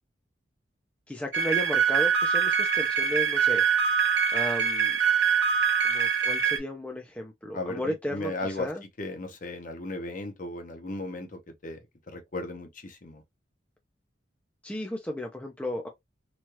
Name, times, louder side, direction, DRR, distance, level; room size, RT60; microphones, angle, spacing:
voice 1, 1.1-3.6 4.3-5.0 5.8-8.8 14.6-15.9, left 1 dB, 5° left, 0.4 m, -34 dB
sound 1, 1.3-6.6, right 7 dB, 75° right, 0.8 m, -24 dB
voice 2, 7.5-8.7 9.0-11.8 12.1-13.2, left 2 dB, 45° left, 0.7 m, -36 dB
3.1 x 2.3 x 2.8 m
head